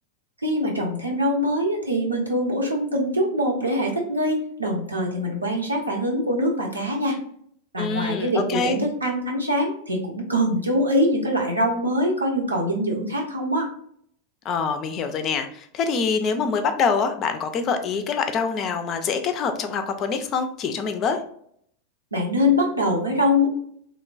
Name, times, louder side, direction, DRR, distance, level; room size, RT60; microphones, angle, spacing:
voice 1, 0.4-7.2 7.7-13.7 22.1-23.5, equal, 80° right, -1 dB, 0.7 m, -23 dB
voice 2, 7.8-8.8 14.4-21.2, left 5 dB, 35° left, 7 dB, 0.3 m, -25 dB
3.1 x 2.1 x 2.4 m, 0.65 s
figure-of-eight pair, 90°, 0 cm